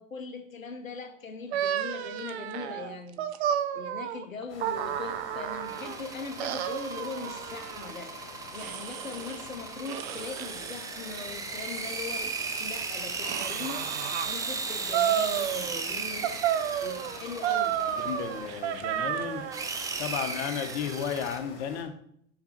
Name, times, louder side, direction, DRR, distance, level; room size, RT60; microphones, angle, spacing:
voice 1, 0.0-3.3 3.7-8.2 8.5-12.3 12.6-16.3 16.8-17.8, left 5 dB, 90° left, 6 dB, 0.6 m, -40 dB
sound 1, 1.5-6.0 6.4-7.9 8.5-9.5 9.9-10.9 11.4-14.3 14.9-15.9 16.2-19.7, right 10 dB, 55° right, 0.6 m, -32 dB
sound 2, 4.5-21.8, left 4 dB, 35° left, 2.5 m, -48 dB
sound 3, 5.6-18.8 19.5-21.4, right 4 dB, 10° right, 0.4 m, -37 dB
voice 2, 17.9-19.4 20.0-21.9, left 8 dB, 55° left, 7 dB, 0.9 m, -33 dB
5.9 x 5.0 x 4.2 m, 0.70 s
figure-of-eight pair, 80°, 39 cm